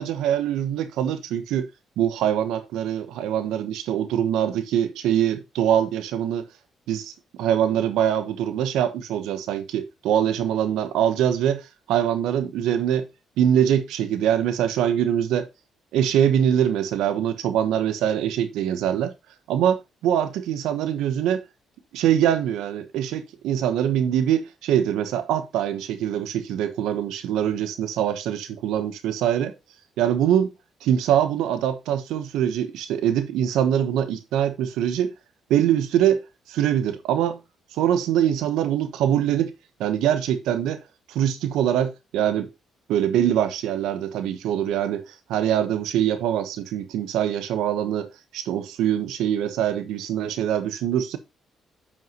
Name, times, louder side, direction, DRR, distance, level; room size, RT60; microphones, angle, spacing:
voice 1, 0.0-1.7 2.0-6.5 6.9-7.1 7.4-13.1 13.4-15.5 15.9-19.1 19.5-21.4 21.9-29.5 30.0-30.5 30.8-35.1 35.5-37.4 37.7-39.5 39.8-40.8 41.1-42.5 42.9-48.1 48.3-51.2, right 10 dB, 90° right, 1.0 m, -23 dB
9.5 x 5.7 x 3.0 m
cardioid pair, 90°, 0 cm